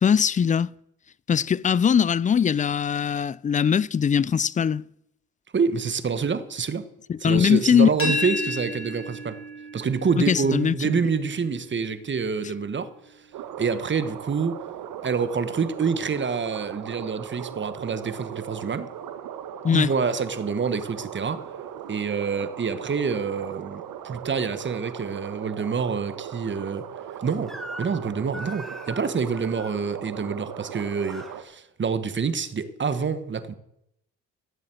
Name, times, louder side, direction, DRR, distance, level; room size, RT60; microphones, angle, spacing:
voice 1, 0.0-0.7 1.3-4.8 7.1-8.1 10.3-10.7 19.6-19.9, left 7 dB, 25° left, 0.4 m, -21 dB
voice 2, 5.5-6.9 7.2-9.4 9.7-12.9 13.6-14.6 15.0-18.9 19.7-21.5 21.9-26.9 27.2-33.5, right 5 dB, 35° right, 1.3 m, -27 dB
sound 1, 8.0-13.7, left 2 dB, 40° left, 5.0 m, -34 dB
sound 2, 13.3-31.4, right 10 dB, 75° right, 1.4 m, -38 dB
Crying sobbing / Screech, 27.5-28.0 28.3-29.8 30.6-31.3, equal, ahead, 2.9 m, -40 dB
14.0 x 7.6 x 7.8 m
supercardioid pair, 70°, 33 cm